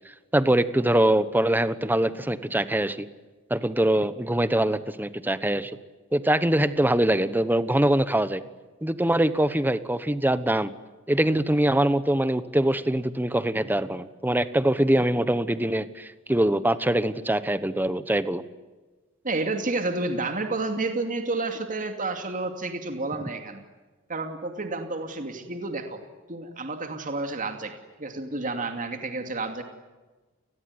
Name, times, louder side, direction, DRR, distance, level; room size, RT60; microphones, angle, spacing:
voice 1, 0.3-3.1 3.5-5.7 6.1-8.4 8.8-10.7 11.1-18.4, right 1 dB, 10° right, 13 dB, 1.2 m, -23 dB
voice 2, 19.2-23.6 24.1-26.0 26.3-29.6, right 3 dB, 40° right, 6 dB, 2.5 m, -30 dB
29.5 x 20.5 x 9.7 m, 1.3 s
head